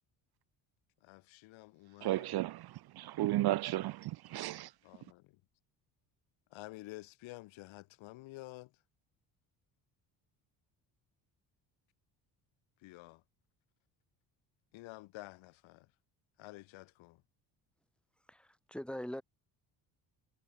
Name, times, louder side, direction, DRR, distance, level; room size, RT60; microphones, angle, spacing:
voice 1, 1.0-2.3 4.8-5.4 6.5-8.7 12.8-13.2 14.7-15.9 16.4-17.2, left 19 dB, 85° left, 1.8 m, -50 dB
voice 2, 2.0-4.7, right 16 dB, 55° right, 0.6 m, -34 dB
voice 3, 18.3-19.2, equal, ahead, 3.1 m, -42 dB
cardioid pair, 85°, 45 cm